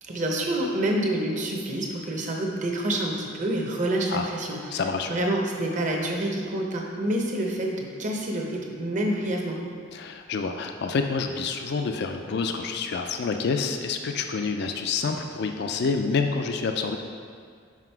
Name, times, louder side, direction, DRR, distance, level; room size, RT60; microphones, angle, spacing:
voice 1, 0.0-4.8 5.1-9.6, right 1 dB, 35° right, 0 dB, 0.8 m, -27 dB
voice 2, 4.7-5.1 9.9-17.0, left 4 dB, 50° left, 5 dB, 0.4 m, -28 dB
6.0 x 5.0 x 4.5 m, 2.1 s
head